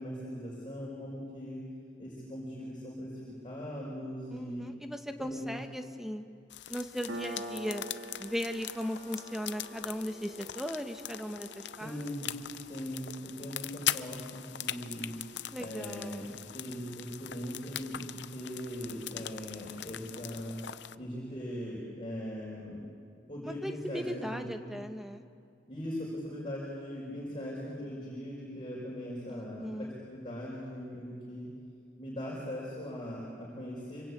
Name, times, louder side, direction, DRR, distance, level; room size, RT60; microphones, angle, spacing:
voice 1, 0.0-1.6 2.0-3.1 3.4-4.7 5.2-5.6 11.8-15.1 15.6-20.6 20.9-22.8 23.3-24.7 25.7-31.5 32.0-34.0, equal, 25° left, -5 dB, 5.1 m, -40 dB
voice 2, 4.3-6.2 6.7-7.8 8.2-12.3 15.5-16.3 23.4-25.2 29.3-29.9, equal, ahead, 6 dB, 1.2 m, -38 dB
sound 1, 6.5-21.0, left 12 dB, 65° left, 0.6 m, -41 dB
Piano, 7.1-14.3, right 1 dB, 75° right, 2.8 m, -46 dB
26.5 x 24.5 x 8.6 m, 2.3 s
head